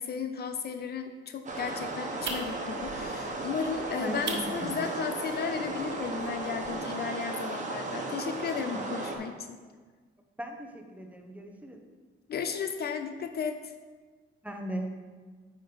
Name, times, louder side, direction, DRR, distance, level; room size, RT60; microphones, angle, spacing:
voice 1, 0.0-9.6 12.3-13.7, left 6 dB, 55° left, 7 dB, 0.5 m, -34 dB
sound 1, 1.5-9.2, right 2 dB, 40° right, 1.4 m, -35 dB
sound 2, 1.5-6.8, right 4 dB, 65° right, 1.3 m, -43 dB
voice 2, 4.0-4.7 8.7-9.0 10.4-11.8 14.4-14.9, right 1 dB, 5° right, 3 dB, 1.1 m, -38 dB
9.0 x 4.0 x 5.1 m, 1.4 s
cardioid pair, 90°, 20 cm